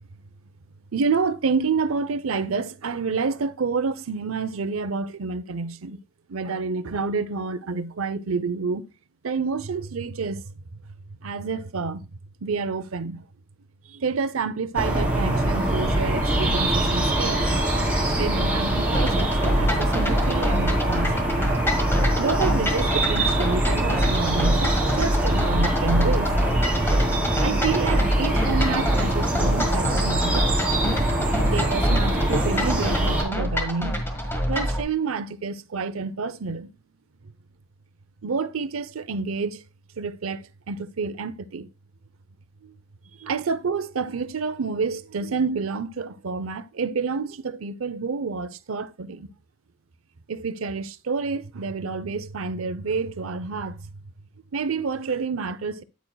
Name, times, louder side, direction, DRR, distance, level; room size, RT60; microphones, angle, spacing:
voice 1, 0.9-6.0 6.3-8.8 9.2-10.5 11.2-12.1 12.4-13.3 13.9-17.6 18.0-21.4 22.2-26.3 27.4-30.5 31.5-34.0 34.5-36.7 38.2-39.6 40.0-41.7 42.6-42.7 43.2-49.3 50.3-53.9 54.5-55.8, right 4 dB, 80° right, 0.6 m, -28 dB
sound 1, 14.7-33.2, right 1 dB, 5° right, 2.9 m, -23 dB
sound 2, 18.9-34.8, equal, 10° left, 1.6 m, -26 dB
9.4 x 8.5 x 2.3 m
head